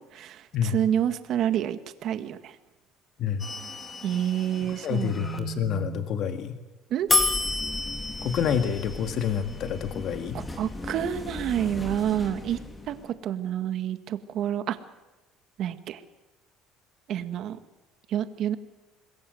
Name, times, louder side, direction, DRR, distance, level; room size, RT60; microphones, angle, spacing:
voice 1, 0.0-2.5 4.0-6.1 6.9-7.1 10.3-12.6 12.9-14.8 15.6-16.0 17.1-17.6 18.1-18.5, right 10 dB, 55° right, 10 dB, 1.8 m, -29 dB
sound 1, 3.4-5.4 7.1-13.1, left 2 dB, 15° left, 3.0 m, -32 dB
voice 2, 4.7-6.6 8.2-10.4, left 8 dB, 55° left, 7 dB, 1.8 m, -28 dB
27.0 x 21.5 x 7.9 m, 1.1 s
cardioid pair, 115°, 0 cm